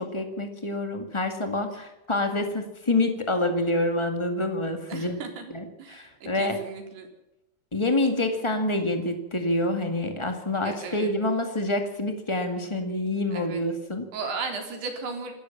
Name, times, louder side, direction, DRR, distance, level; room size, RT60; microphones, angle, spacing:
voice 1, 0.0-5.2 5.5-6.6 7.7-14.1, left 2 dB, 45° left, 5 dB, 0.4 m, -27 dB
voice 2, 4.9-5.4 5.8-7.1 10.5-11.1 13.3-13.6 14.1-15.3, right 4 dB, 85° right, 4 dB, 5.8 m, -35 dB
27.0 x 13.5 x 7.2 m, 0.94 s
omnidirectional pair, 4.6 m